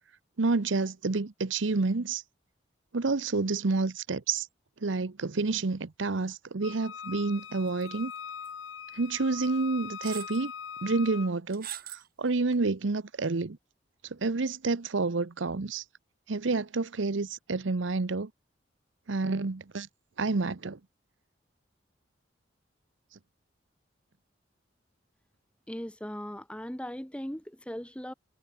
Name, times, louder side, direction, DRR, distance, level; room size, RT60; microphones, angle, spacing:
voice 1, 0.4-2.2 2.9-4.5 4.8-8.1 8.9-10.5 10.8-13.6 14.1-15.8 16.3-18.3 19.1-19.9 20.2-20.8, right 3 dB, 85° right, 0.8 m, -29 dB
Wind instrument woodwind instrument, 6.6-11.3, left 7 dB, 90° left, 0.9 m, -42 dB
sound 1, 7.8-8.2 8.5-8.6 9.4-9.5 10.0-10.4 11.5-12.1 12.5-12.6, right 12 dB, 50° right, 1.8 m, -41 dB
voice 2, 25.7-28.1, equal, 5° left, 1.6 m, -38 dB
head